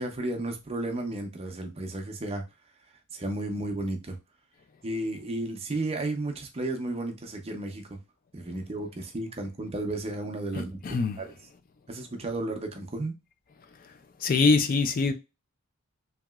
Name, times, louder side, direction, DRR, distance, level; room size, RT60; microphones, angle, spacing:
voice 1, 0.0-2.4 3.1-4.2 4.8-8.0 8.3-11.3 11.9-13.2, right 2 dB, 25° right, 0.5 m, -33 dB
voice 2, 10.5-11.2 14.2-15.1, left 4 dB, 40° left, 0.3 m, -24 dB
2.9 x 2.8 x 2.2 m
head